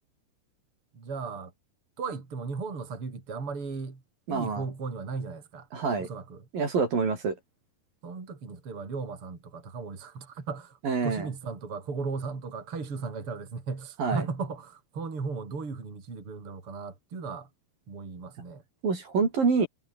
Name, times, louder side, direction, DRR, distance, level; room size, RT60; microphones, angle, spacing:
voice 1, 0.9-1.5 2.0-4.0 4.3-5.7 6.0-6.5 8.0-17.5 17.9-18.6, right 4 dB, 35° right, 5.1 m, -36 dB
voice 2, 4.3-4.6 5.7-6.1 6.5-7.4 10.8-11.3 14.0-14.2 18.8-19.7, right 5 dB, 60° right, 6.9 m, -26 dB
omnidirectional pair, 4.6 m